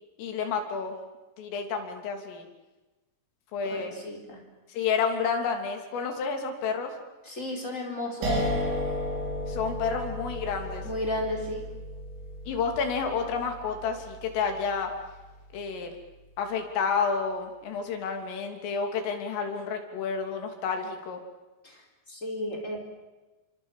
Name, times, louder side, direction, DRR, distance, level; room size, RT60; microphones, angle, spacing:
voice 1, 0.2-1.0 1.4-2.5 3.5-3.9 4.7-6.9 9.5-10.9 12.5-14.9 15.5-15.9 16.4-21.2, left 5 dB, 80° left, 4 dB, 5.6 m, -30 dB
voice 2, 3.6-4.4 7.2-8.4 10.8-11.6 21.6-21.8 22.1-22.8, left 1 dB, 15° left, 2 dB, 4.3 m, -33 dB
sound 1, 8.2-15.2, equal, 80° right, 8.5 m, -33 dB
28.5 x 26.0 x 7.4 m, 1.1 s
omnidirectional pair, 5.7 m